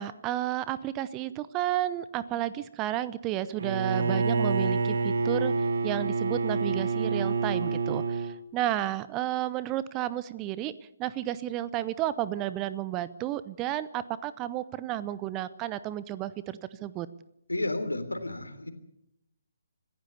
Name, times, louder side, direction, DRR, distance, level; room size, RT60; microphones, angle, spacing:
voice 1, 0.0-5.5 5.8-10.7 11.0-17.1, right 13 dB, 20° right, 16 dB, 0.8 m, -32 dB
Bowed string instrument, 3.6-8.4, right 4 dB, 60° right, 1.3 m, -27 dB
voice 2, 17.5-18.7, left 2 dB, 80° left, 9 dB, 3.4 m, -32 dB
26.0 x 15.5 x 6.9 m, 0.79 s
figure-of-eight pair, 135°, 0 cm